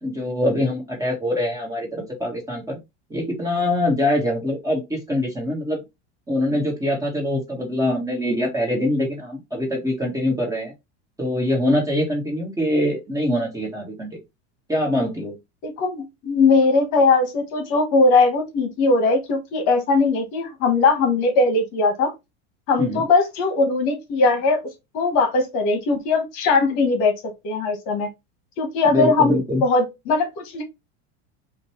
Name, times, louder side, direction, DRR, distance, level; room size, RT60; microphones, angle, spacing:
voice 1, 0.0-2.6 3.1-5.8 6.3-10.7 11.2-14.1 14.7-15.3 22.8-23.0 28.9-29.6, left 1 dB, 10° right, 1.4 m, -23 dB
voice 2, 15.6-22.1 22.7-24.6 24.9-27.1 27.4-28.1 28.6-30.6, left 3 dB, 50° left, 1.2 m, -20 dB
5.2 x 2.5 x 3.0 m
supercardioid pair, 145°, 35 cm